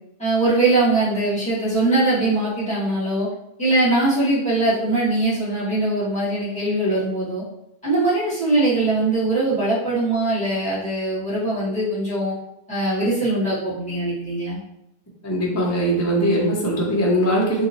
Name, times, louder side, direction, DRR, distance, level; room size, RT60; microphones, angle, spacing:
voice 1, 0.2-3.3 3.6-7.4 7.8-12.3 12.7-14.6, right 2 dB, 5° left, -10 dB, 1.4 m, -21 dB
voice 2, 15.2-17.7, equal, 25° left, -3 dB, 0.4 m, -20 dB
2.8 x 2.2 x 2.8 m, 0.81 s
omnidirectional pair, 1.1 m